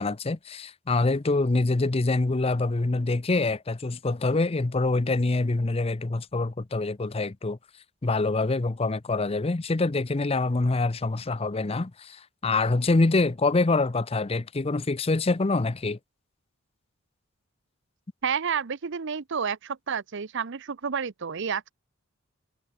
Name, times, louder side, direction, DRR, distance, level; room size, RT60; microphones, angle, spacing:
voice 1, 0.0-7.6 8.0-16.0, left 3 dB, 30° left, 0.6 m, -25 dB
voice 2, 18.2-21.7, right 6 dB, 60° right, 0.7 m, -30 dB
head